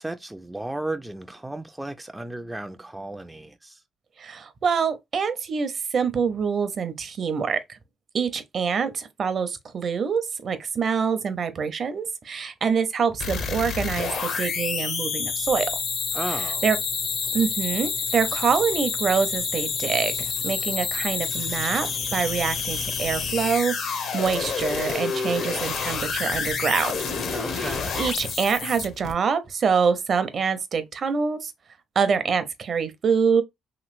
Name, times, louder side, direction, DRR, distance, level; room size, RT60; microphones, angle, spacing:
voice 1, 0.0-3.8 16.1-16.6 27.3-27.9, right 2 dB, 10° right, 0.3 m, -34 dB
voice 2, 4.2-7.8 8.1-15.7 16.6-16.8 17.3-20.1 20.4-27.0 27.5-31.5 32.0-33.4, right 6 dB, 50° right, 0.6 m, -25 dB
sound 1, 13.2-29.1, left 5 dB, 65° left, 0.8 m, -28 dB
3.0 x 2.9 x 2.4 m
cardioid pair, 80°, 0 cm